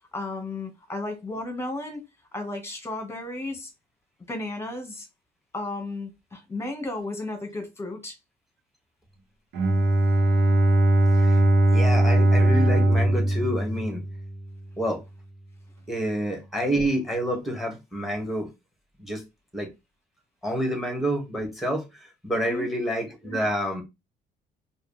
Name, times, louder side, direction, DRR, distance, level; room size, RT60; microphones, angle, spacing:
voice 1, 0.1-2.0 2.3-3.7 4.3-5.1 5.5-8.1 22.3-22.7, left 2 dB, 15° left, 1.6 m, -34 dB
Bowed string instrument, 9.5-14.5, right 1 dB, 85° right, 1.2 m, -20 dB
voice 2, 11.7-14.0 14.8-15.0 15.9-18.5 19.0-19.2 19.5-19.7 20.4-21.9 22.2-23.8, equal, ahead, 1.8 m, -28 dB
4.8 x 2.7 x 3.4 m
cardioid pair, 110°, 17 cm